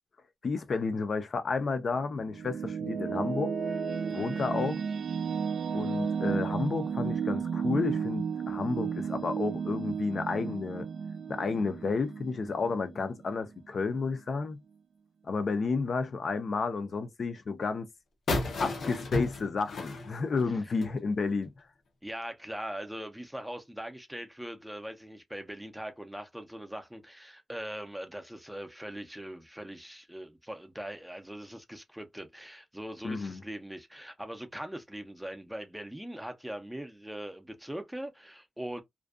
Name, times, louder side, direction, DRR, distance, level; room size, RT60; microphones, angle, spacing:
voice 1, 0.4-3.5 4.1-4.8 5.7-10.9 11.3-14.6 15.3-17.9 18.6-21.5 33.0-33.4, left 4 dB, 55° left, 0.4 m, -31 dB
sound 1, 1.9-13.2, right 6 dB, 90° right, 0.3 m, -33 dB
sound 2, 18.3-21.0, left 2 dB, 90° left, 0.6 m, -33 dB
voice 2, 22.0-38.8, right 1 dB, 5° right, 0.4 m, -41 dB
2.5 x 2.2 x 2.3 m
wide cardioid pair, 155°, 0 cm